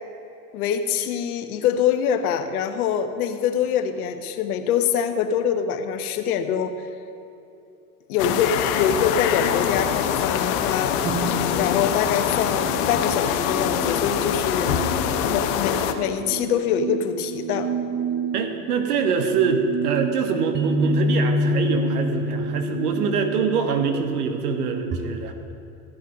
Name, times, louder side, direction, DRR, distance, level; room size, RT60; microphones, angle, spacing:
voice 1, 0.5-6.8 8.1-10.9 11.5-14.7 15.2-17.7, left 8 dB, 70° left, 8 dB, 1.1 m, -24 dB
sound 1, 8.2-15.9, left 9 dB, 55° left, 0.9 m, -24 dB
sound 2, 11.0-25.0, right 1 dB, 25° right, 0.8 m, -29 dB
voice 2, 18.3-25.3, right 6 dB, 75° right, 6 dB, 1.3 m, -24 dB
14.0 x 8.1 x 5.3 m, 2.7 s
hypercardioid pair, 105°, 46 cm